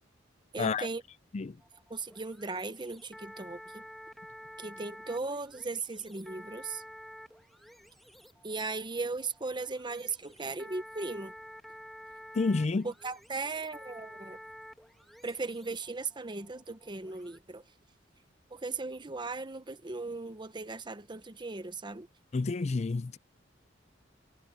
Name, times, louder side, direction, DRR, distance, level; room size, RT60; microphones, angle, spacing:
voice 1, 0.5-1.0 1.9-3.8 4.6-6.8 8.4-11.3 12.8-14.4 15.2-17.6 18.5-22.1, right 3 dB, 25° right, 0.9 m, -37 dB
sound 1, 1.6-17.4, equal, ahead, 1.8 m, -50 dB
voice 2, 12.3-12.9 22.3-23.2, left 3 dB, 35° left, 0.4 m, -29 dB
head